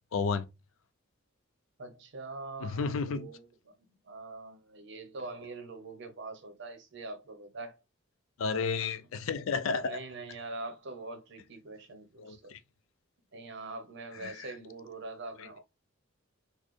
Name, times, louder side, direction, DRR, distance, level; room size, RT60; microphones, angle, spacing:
voice 1, 0.1-0.5 2.6-3.3 8.4-10.0 12.2-12.6 14.2-14.5, left 5 dB, 70° left, 0.4 m, -32 dB
voice 2, 1.8-3.7 4.0-7.8 8.9-9.0 9.8-12.5 13.3-15.6, right 3 dB, 60° right, 0.8 m, -43 dB
4.0 x 2.1 x 3.2 m
head